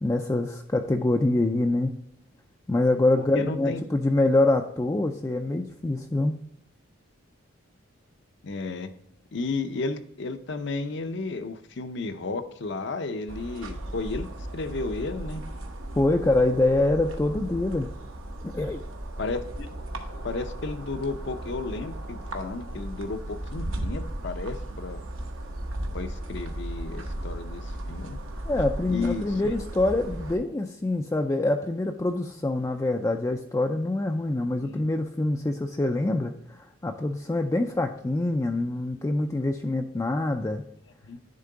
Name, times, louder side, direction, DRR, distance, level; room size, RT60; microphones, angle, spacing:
voice 1, 0.0-2.0 2.7-6.4 16.0-17.9 18.5-18.8 28.5-40.6, left 2 dB, 15° left, 4 dB, 0.3 m, -25 dB
voice 2, 3.2-3.8 8.4-8.9 9.3-15.4 19.2-19.7 20.2-25.0 25.9-28.2 28.9-29.6 34.6-34.8 41.0-41.2, left 3 dB, 55° left, 9 dB, 0.6 m, -33 dB
sound 1, 13.3-30.4, right 1 dB, 80° right, 1.0 m, -36 dB
10.5 x 3.7 x 3.8 m, 0.77 s
head